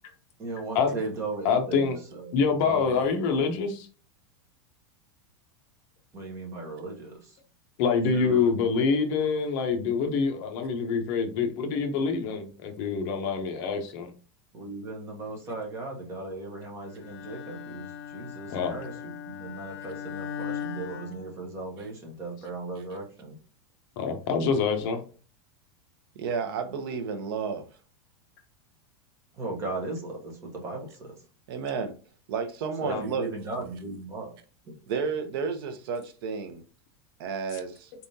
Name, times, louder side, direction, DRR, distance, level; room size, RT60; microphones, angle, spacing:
voice 1, 0.4-2.4 2.6-3.1 6.1-7.1 8.1-8.7 14.5-18.9 19.2-23.3 29.4-31.1 32.8-34.3 34.7-34.8, right 2 dB, 20° right, 1.1 m, -37 dB
voice 2, 1.4-2.0 2.3-3.9 7.8-14.1 18.5-18.7 24.0-25.0 32.9-33.0, left 5 dB, 40° left, 0.8 m, -26 dB
Bowed string instrument, 17.0-22.0, left 8 dB, 85° left, 0.6 m, -39 dB
voice 3, 26.2-27.6 31.5-31.9 32.3-33.3 34.9-36.6 37.2-37.9, right 5 dB, 55° right, 0.7 m, -31 dB
4.2 x 3.5 x 2.7 m
supercardioid pair, 170°, 15 cm